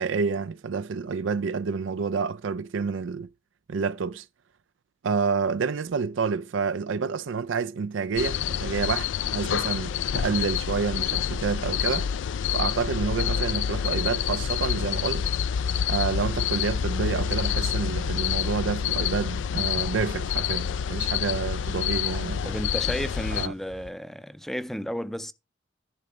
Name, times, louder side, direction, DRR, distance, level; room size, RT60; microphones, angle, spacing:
voice 1, 0.0-3.3 3.7-4.3 5.0-12.1 12.5-15.3 15.9-22.5 23.3-23.5, right 5 dB, 90° right, 0.4 m, -28 dB
sound 1, 8.2-23.5, left 8 dB, 70° left, 0.3 m, -27 dB
sound 2, 12.8-23.9, right 1 dB, 45° right, 1.1 m, -52 dB
voice 2, 22.5-25.3, equal, ahead, 0.5 m, -33 dB
11.0 x 4.1 x 5.0 m
head